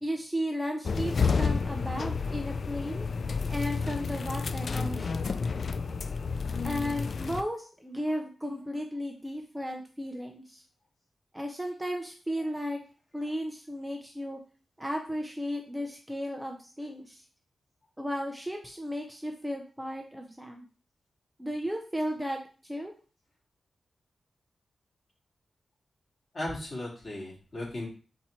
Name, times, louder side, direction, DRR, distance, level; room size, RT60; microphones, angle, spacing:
voice 1, 0.0-3.1 3.5-5.3 6.6-10.6 11.3-12.8 13.1-14.4 14.8-17.2 18.0-20.7 21.4-22.9, equal, 10° right, 2 dB, 0.6 m, -35 dB
sound 1, 0.8-7.4, left 5 dB, 60° left, 0.3 m, -30 dB
voice 2, 26.3-27.9, left 1 dB, 45° left, -4 dB, 2.4 m, -36 dB
3.9 x 3.0 x 4.2 m, 0.37 s
cardioid pair, 80°, 0 cm